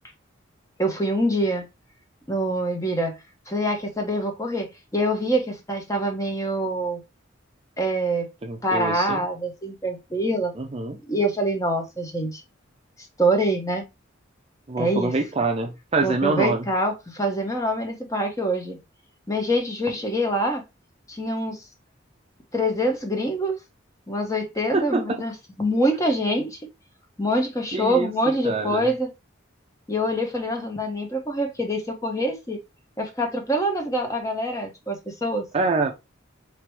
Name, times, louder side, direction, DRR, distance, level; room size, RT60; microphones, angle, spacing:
voice 1, 0.8-1.7 2.3-3.1 3.5-7.0 7.8-8.3 8.6-10.5 11.1-12.4 13.2-13.8 14.8-15.1 16.0-18.8 19.3-20.6 21.1-21.6 22.5-23.6 24.1-25.3 25.6-26.6 27.2-29.1 29.9-32.6 33.0-35.5, equal, 15° left, 1.0 m, -25 dB
voice 2, 8.4-9.2 10.6-11.0 14.7-16.6 24.7-25.2 27.7-28.1 28.4-28.9 35.5-35.9, right 3 dB, 30° right, 0.4 m, -25 dB
4.7 x 3.0 x 3.0 m
head